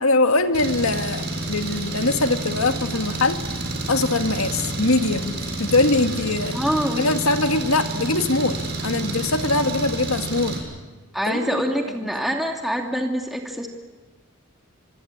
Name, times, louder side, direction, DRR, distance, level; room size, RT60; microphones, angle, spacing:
voice 1, 0.0-3.4 3.9-5.3 5.6-6.6 7.0-8.6 8.8-10.5 11.3-11.5 11.9-12.2, left 2 dB, 85° left, 7 dB, 2.0 m, -22 dB
Engine, 0.5-10.6, right 2 dB, 55° right, 6.9 m, -29 dB
voice 2, 6.5-7.0 11.1-13.7, equal, ahead, 2 dB, 2.5 m, -25 dB
26.5 x 24.0 x 8.7 m, 1.3 s
head